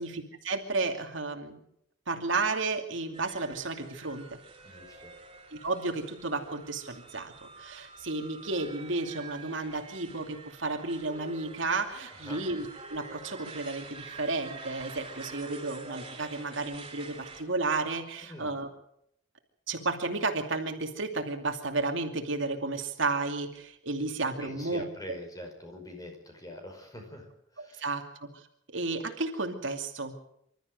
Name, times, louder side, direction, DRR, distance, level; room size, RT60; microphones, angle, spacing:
voice 1, 0.0-1.6 2.1-4.4 5.5-18.7 19.7-24.8 27.6-28.5 28.7-30.1, right 3 dB, 75° right, 4 dB, 2.6 m, -32 dB
sound 1, 3.1-17.4, right 4 dB, 25° right, 4.6 m, -47 dB
voice 2, 4.6-5.1 12.1-12.4 18.3-18.5 24.4-27.9, left 1 dB, 20° left, 3 dB, 5.2 m, -45 dB
26.0 x 13.5 x 7.9 m, 0.74 s
head